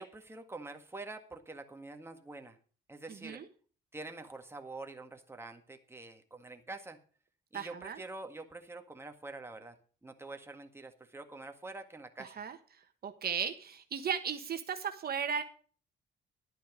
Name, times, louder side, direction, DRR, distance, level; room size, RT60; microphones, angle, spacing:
voice 1, 0.0-2.6 2.9-3.4 3.9-7.0 7.5-9.8 10.0-12.4, right 2 dB, 10° right, 5 dB, 1.8 m, -46 dB
voice 2, 3.1-3.5 7.5-8.0 12.2-12.6 13.0-15.4, right 7 dB, 50° right, 7 dB, 1.3 m, -36 dB
11.5 x 9.2 x 5.1 m, 0.40 s
cardioid pair, 90°, 20 cm